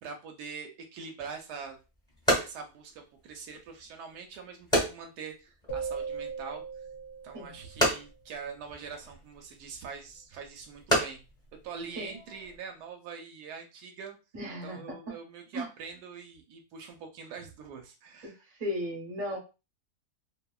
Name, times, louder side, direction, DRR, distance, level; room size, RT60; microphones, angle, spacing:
voice 1, 0.0-1.8 2.4-6.6 7.2-11.2 11.6-14.2 14.6-18.4, right 5 dB, 85° right, 3 dB, 1.2 m, -43 dB
sound 1, 1.2-12.6, equal, 5° left, 1.0 m, -34 dB
sound 2, 5.7-7.9, right 5 dB, 80° left, 0.5 m, -38 dB
voice 2, 14.3-15.1 15.5-15.7 18.2-19.4, equal, 30° right, -2 dB, 0.8 m, -36 dB
2.8 x 2.6 x 2.3 m, 0.30 s
omnidirectional pair, 1.6 m